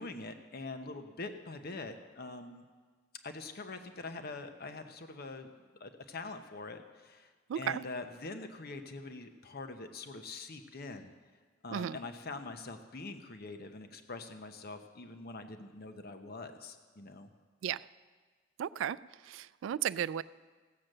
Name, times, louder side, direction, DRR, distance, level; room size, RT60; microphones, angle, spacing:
voice 1, 0.0-2.6 3.2-5.5 5.8-11.1 11.6-17.3, left 3 dB, 55° left, 7 dB, 0.9 m, -44 dB
voice 2, 7.5-7.8 11.7-12.0 17.6-17.8 18.6-19.0 19.3-20.2, right 9 dB, 85° right, 19 dB, 0.3 m, -34 dB
15.5 x 7.7 x 6.6 m, 1.5 s
head